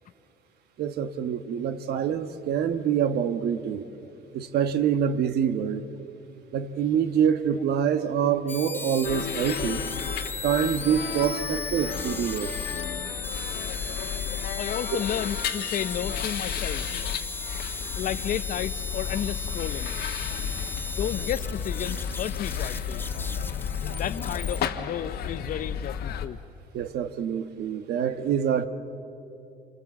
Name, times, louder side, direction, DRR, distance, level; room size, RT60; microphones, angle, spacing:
voice 1, 0.8-3.9 4.3-5.8 6.5-9.8 10.4-12.5 26.7-28.7, right 8 dB, 70° right, 1.3 m, -26 dB
sound 1, 8.5-24.7, left 2 dB, 10° left, 0.7 m, -37 dB
sound 2, 9.0-26.3, left 8 dB, 70° left, 1.4 m, -33 dB
voice 2, 14.6-16.9 18.0-19.9 21.0-23.0 23.9-26.4, left 10 dB, 50° left, 0.7 m, -32 dB
28.0 x 24.5 x 7.4 m
cardioid pair, 110°, 17 cm